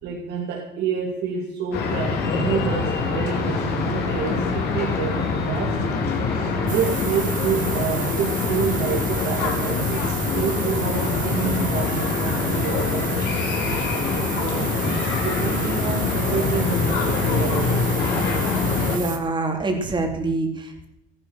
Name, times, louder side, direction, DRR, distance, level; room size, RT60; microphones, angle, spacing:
voice 1, 0.0-5.9 6.3-13.6 14.3-17.8, right 6 dB, 75° right, -2 dB, 2.7 m, -29 dB
sound 1, 1.7-19.0, left 4 dB, 75° left, 3.8 m, -24 dB
sound 2, 6.7-19.2, right 8 dB, 50° right, 2.1 m, -33 dB
voice 2, 18.9-20.9, right 2 dB, 25° right, 2 dB, 3.4 m, -25 dB
14.5 x 11.0 x 6.3 m, 0.84 s
cardioid pair, 110°, 17 cm